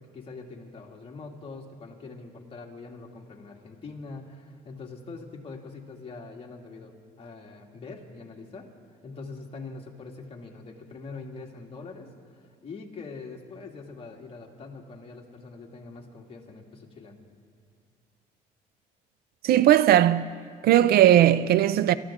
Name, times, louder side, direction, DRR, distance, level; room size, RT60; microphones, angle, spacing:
voice 1, 0.0-8.7 9.0-17.2, left 3 dB, 35° left, 2.2 m, -43 dB
voice 2, 19.4-20.3 20.6-21.9, right 12 dB, 65° right, 0.5 m, -18 dB
28.0 x 14.0 x 3.7 m
cardioid pair, 110°, 17 cm